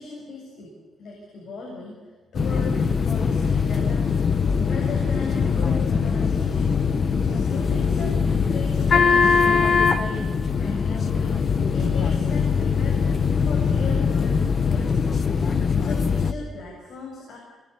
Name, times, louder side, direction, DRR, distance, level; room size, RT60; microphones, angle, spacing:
voice 1, 0.0-2.0 2.3-4.3 4.6-6.7 7.2-10.3 10.6-11.4 11.7-15.3 15.8-17.4, left 3 dB, 60° left, -1 dB, 7.3 m, -37 dB
sound 1, 2.3-16.3, left 5 dB, 35° left, 1.3 m, -22 dB
27.0 x 23.0 x 8.5 m, 1.4 s
wide cardioid pair, 170°, 0 cm